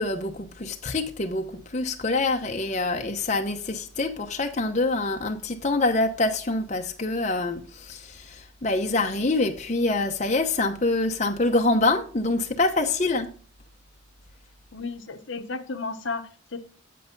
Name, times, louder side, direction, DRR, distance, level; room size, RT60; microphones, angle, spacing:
voice 1, 0.0-13.3, left 2 dB, 35° left, 0.8 m, -25 dB
voice 2, 14.7-16.6, left 4 dB, 65° left, 1.0 m, -33 dB
8.4 x 8.1 x 3.8 m
head